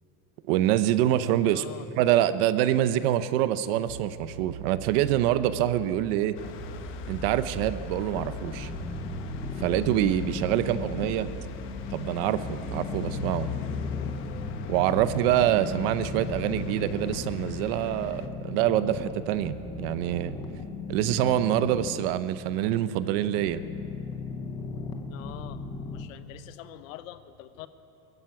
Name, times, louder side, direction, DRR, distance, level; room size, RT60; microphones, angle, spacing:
voice 1, 0.5-1.6 2.0-6.4 7.1-8.7 9.6-11.3 11.9-13.5 14.7-20.4 20.9-23.6, right 12 dB, 45° right, 13 dB, 0.7 m, -25 dB
voice 2, 1.4-1.9 25.1-25.6 25.9-27.7, left 12 dB, 70° left, 12 dB, 1.1 m, -44 dB
sound 1, 3.9-17.7, right 5 dB, 70° right, 2.4 m, -43 dB
sound 2, 6.4-18.3, left 6 dB, 30° left, 1.0 m, -39 dB
sound 3, 8.2-26.0, left 4 dB, 10° left, 0.6 m, -38 dB
21.0 x 14.0 x 9.6 m, 2.8 s
supercardioid pair, 180°, 41 cm